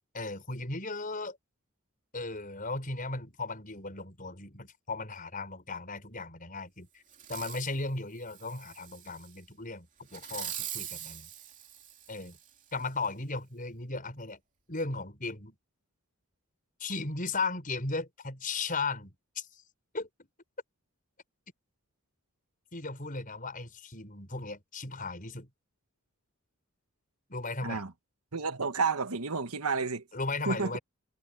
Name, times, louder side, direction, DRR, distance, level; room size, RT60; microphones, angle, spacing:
voice 1, 0.1-1.4 2.1-6.9 7.3-11.3 12.1-12.4 12.7-14.4 14.7-15.6 16.8-19.6 19.9-20.1 22.7-25.5 27.3-27.8 30.1-30.8, left 3 dB, 40° left, 5.9 m, -36 dB
Fireworks, 7.1-7.7 8.3-9.3 10.1-12.5 13.0-13.1, right 11 dB, 35° right, 2.8 m, -42 dB
voice 2, 28.3-30.0 30.4-30.8, right 4 dB, 85° right, 1.5 m, -31 dB
head